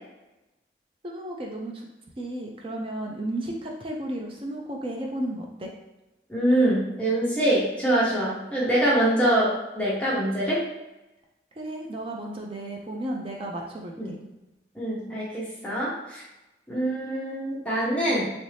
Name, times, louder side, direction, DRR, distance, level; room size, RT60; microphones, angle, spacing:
voice 1, 1.0-1.9 2.2-5.7 11.6-14.1, right 1 dB, 30° right, 0 dB, 0.4 m, -33 dB
voice 2, 6.3-10.6 14.0-14.1 14.7-16.2 16.7-18.2, right 1 dB, 5° left, -7 dB, 0.8 m, -24 dB
3.1 x 2.6 x 3.2 m, 0.99 s
head